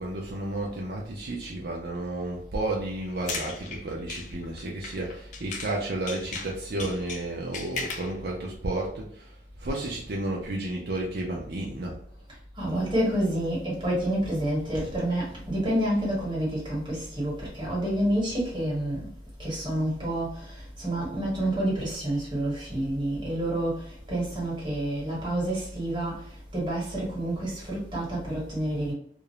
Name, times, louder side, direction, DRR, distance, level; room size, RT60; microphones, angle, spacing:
voice 1, 0.0-12.0, right 2 dB, 65° right, 0.5 m, -32 dB
sound 1, 3.0-5.8 6.1-8.2, left 4 dB, 45° left, 0.4 m, -37 dB
voice 2, 12.6-19.0 19.4-20.3 20.8-23.8 24.1-26.2 26.5-28.9, right 1 dB, 25° right, 1.3 m, -28 dB
2.5 x 2.0 x 2.8 m
head